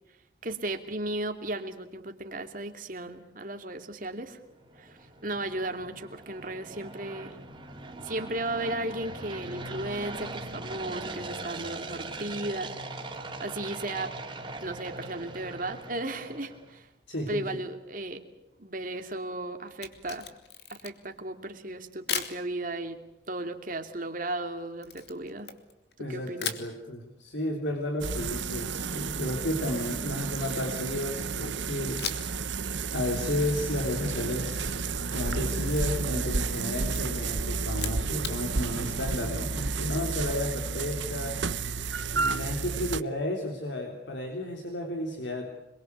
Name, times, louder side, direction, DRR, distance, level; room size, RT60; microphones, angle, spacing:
voice 1, 0.4-4.4 4.8-7.4 8.0-14.1 14.6-16.9 17.3-18.2 18.6-20.3 20.7-25.5 26.0-26.5, right 2 dB, 45° right, 6 dB, 2.7 m, -35 dB
sound 1, 4.4-16.7, right 2 dB, 25° right, 3.5 m, -40 dB
voice 2, 17.1-17.4 26.0-32.2 32.9-34.7 35.1-41.4 42.1-45.5, left 1 dB, 75° left, 2 dB, 3.5 m, -32 dB
Camera, 19.7-21.2 22.1-22.4 24.8-26.0 26.4-26.7 29.4-30.9 32.0-32.4 32.7-32.8 34.8-36.2 36.5-37.0 37.7-38.4, left 8 dB, 60° left, 2.6 m, -38 dB
sound 2, 28.0-43.0, right 4 dB, 75° right, 1.0 m, -31 dB
26.5 x 22.5 x 8.3 m, 0.92 s
head